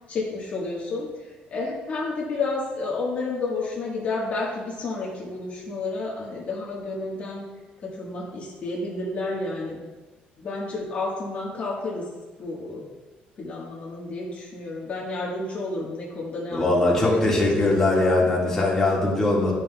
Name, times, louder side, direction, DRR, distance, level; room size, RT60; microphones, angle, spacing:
voice 1, 0.1-7.4 7.8-9.8 10.4-12.1 12.4-12.9 13.4-16.8 17.0-17.9, left 3 dB, 45° left, -4 dB, 1.5 m, -31 dB
voice 2, 16.5-19.5, left 2 dB, 15° left, -5 dB, 1.8 m, -21 dB
10.5 x 5.7 x 2.3 m, 1.3 s
cardioid pair, 135°, 3 cm